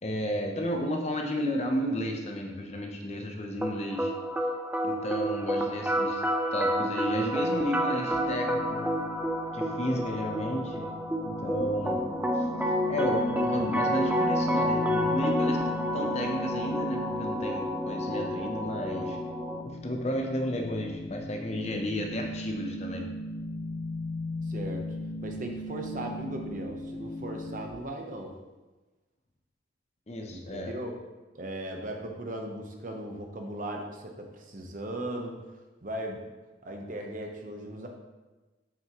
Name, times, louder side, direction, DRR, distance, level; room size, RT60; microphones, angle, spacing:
voice 1, 0.0-4.1 4.8-6.2 6.5-8.9 9.5-10.9 11.2-12.1 12.9-19.2 19.8-23.1 30.1-30.7, equal, 35° left, 3 dB, 0.7 m, -32 dB
sound 1, 3.6-19.6, equal, 10° right, 0.4 m, -29 dB
sound 2, 8.1-27.7, left 1 dB, 75° left, 1.5 m, -38 dB
voice 2, 24.4-24.9 25.2-28.4 30.3-31.0 31.3-35.4 35.8-36.2 36.6-37.9, right 1 dB, 40° right, 2 dB, 0.8 m, -37 dB
7.2 x 6.4 x 3.0 m, 1.2 s
head